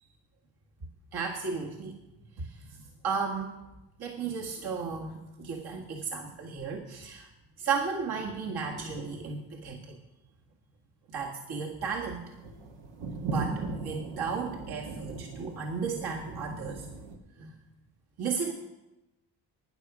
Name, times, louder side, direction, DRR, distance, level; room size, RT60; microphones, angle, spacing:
voice 1, 1.1-1.9 2.4-2.7 3.0-3.5 4.0-7.3 7.6-10.0 11.1-12.2 13.2-17.0 17.4-17.5 18.2-18.5, right 5 dB, 60° right, -1 dB, 2.0 m, -34 dB
sound 1, 12.2-17.2, right 3 dB, 80° right, 1.5 m, -38 dB
12.0 x 9.9 x 6.2 m, 0.98 s
cardioid pair, 75°, 44 cm